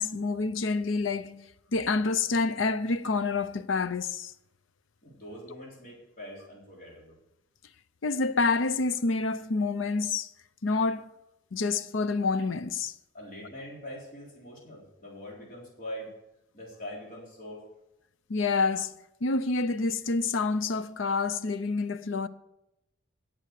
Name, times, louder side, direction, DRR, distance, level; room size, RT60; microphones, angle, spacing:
voice 1, 0.0-1.4 1.7-4.3 8.0-10.3 10.6-11.1 11.5-12.9 18.3-18.9 19.2-22.3, left 3 dB, 85° left, 0.7 m, -28 dB
voice 2, 5.0-7.2 13.1-16.1 16.5-17.6, equal, 45° left, 3.9 m, -43 dB
17.5 x 6.4 x 6.6 m
head